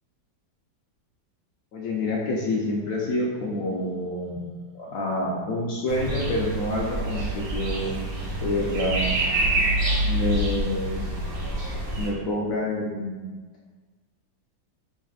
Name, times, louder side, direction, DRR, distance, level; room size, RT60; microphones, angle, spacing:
voice 1, 1.7-4.4 4.7-8.1 8.4-9.4 10.0-11.2 12.0-13.2, left 1 dB, 85° left, -3 dB, 0.7 m, -28 dB
sound 1, 5.9-12.1, right 1 dB, 75° right, 1.6 m, -27 dB
4.5 x 3.2 x 2.4 m, 1.4 s
omnidirectional pair, 2.0 m